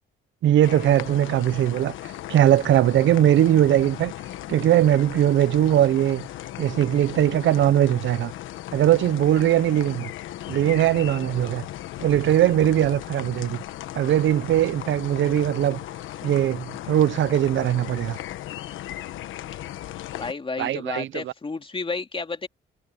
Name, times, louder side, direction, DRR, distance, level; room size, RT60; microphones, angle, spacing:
voice 1, 0.4-1.9 2.3-4.1 4.5-6.2 6.6-8.3 8.7-10.1 10.5-11.7 12.0-13.6 13.9-15.8 16.2-18.2 20.6-21.2, right 12 dB, 70° right, 0.9 m, -20 dB
sound 1, 0.6-20.3, left 13 dB, 85° left, 1.2 m, -36 dB
voice 2, 20.2-22.5, left 4 dB, 25° left, 2.6 m, -31 dB
cardioid pair, 90°, 20 cm